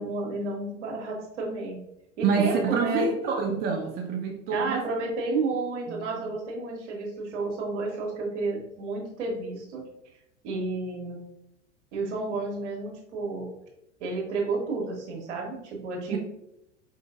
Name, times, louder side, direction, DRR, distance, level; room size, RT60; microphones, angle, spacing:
voice 1, 0.0-1.8 2.2-3.1 4.5-9.8 10.4-11.2 11.9-13.5 14.0-16.2, right 3 dB, 65° right, 0 dB, 1.2 m, -31 dB
voice 2, 2.2-4.9 5.9-6.2 16.1-16.2, right 5 dB, 25° right, 2 dB, 0.5 m, -27 dB
4.8 x 2.5 x 2.4 m, 0.82 s
hypercardioid pair, 95°, 37 cm